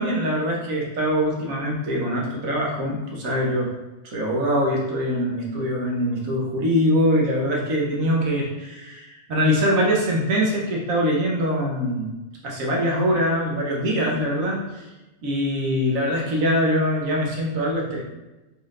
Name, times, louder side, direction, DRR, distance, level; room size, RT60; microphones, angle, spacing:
voice 1, 0.0-3.7 4.1-12.1 12.4-14.9 15.2-18.0, equal, 75° right, -2 dB, 1.3 m, -23 dB
4.2 x 3.4 x 2.4 m, 1.1 s
omnidirectional pair, 1.4 m